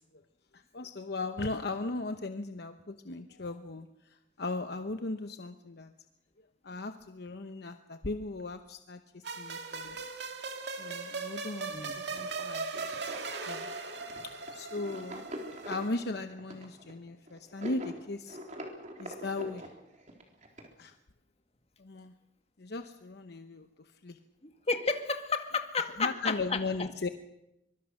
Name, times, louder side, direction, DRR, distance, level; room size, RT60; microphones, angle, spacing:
voice 1, 0.5-3.9 4.4-5.9 6.6-10.0 10.8-12.9 13.4-13.7 14.5-15.2 15.6-18.4 19.0-19.7 20.8-20.9 21.8-22.1 22.6-24.2 26.0-27.1, left 3 dB, 60° left, 8 dB, 0.9 m, -37 dB
sound 1, 9.2-15.9, right 4 dB, 65° right, 2.3 m, -39 dB
sound 2, 12.1-20.7, equal, 45° right, 3.9 m, -44 dB
voice 2, 24.4-26.6, left 4 dB, 35° left, 6 dB, 2.0 m, -32 dB
24.5 x 23.0 x 6.5 m, 0.88 s
head